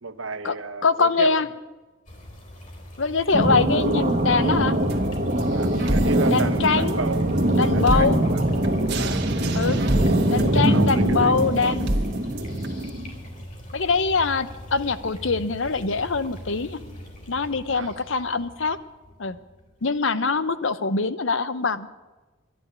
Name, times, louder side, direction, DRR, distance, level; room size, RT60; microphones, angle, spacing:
voice 1, 0.0-1.5 5.5-7.3 7.7-8.4 9.0-9.3 10.5-11.3 11.6-11.8 17.7-17.9, right 4 dB, 80° right, 1.0 m, -33 dB
voice 2, 0.8-1.5 3.0-4.7 6.3-7.0 7.5-8.2 9.5-9.8 10.3-11.9 13.7-16.8 17.3-18.8 19.2-19.4 19.8-21.9, left 4 dB, 65° left, 0.8 m, -23 dB
sound 1, 2.1-20.2, equal, 40° left, 3.8 m, -41 dB
sound 2, 3.3-13.2, right 1 dB, 40° right, 1.4 m, -23 dB
sound 3, 4.9-12.9, right 1 dB, 55° right, 1.8 m, -31 dB
12.0 x 11.5 x 9.6 m
head